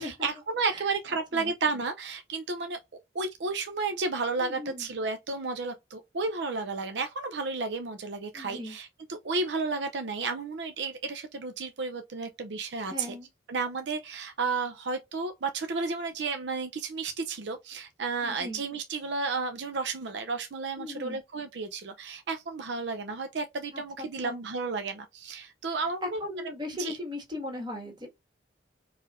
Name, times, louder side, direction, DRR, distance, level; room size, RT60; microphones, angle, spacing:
voice 1, 0.0-2.8 3.1-13.2 13.5-26.2 26.8-26.9, right 4 dB, 70° right, 0.6 m, -32 dB
voice 2, 4.4-4.9 8.3-8.8 12.8-13.3 18.2-18.6 20.8-21.2 23.7-24.4 26.0-28.1, left 2 dB, 25° right, 1.7 m, -38 dB
4.7 x 3.1 x 2.5 m
head